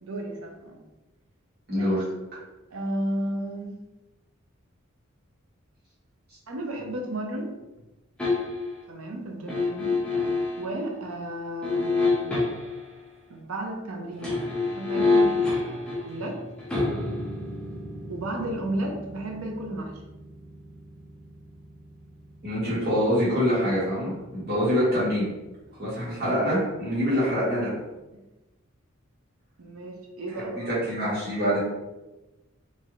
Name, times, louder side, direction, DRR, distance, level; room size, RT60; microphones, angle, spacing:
voice 1, 0.0-0.8 1.7-2.0 2.7-3.8 6.5-7.5 8.9-10.0 10.6-12.5 13.3-16.4 18.1-19.9 25.7-25.8 29.6-30.8, right 1 dB, 85° right, 2 dB, 0.6 m, -33 dB
voice 2, 1.7-2.0 22.4-25.3 25.8-27.7 30.5-31.6, equal, 50° right, -9 dB, 1.4 m, -25 dB
sound 1, 8.2-8.8 9.5-10.7 11.6-12.8 14.1-25.0 25.3-25.4, left 3 dB, 5° left, 0.7 m, -29 dB
3.0 x 2.6 x 2.5 m, 1.0 s
head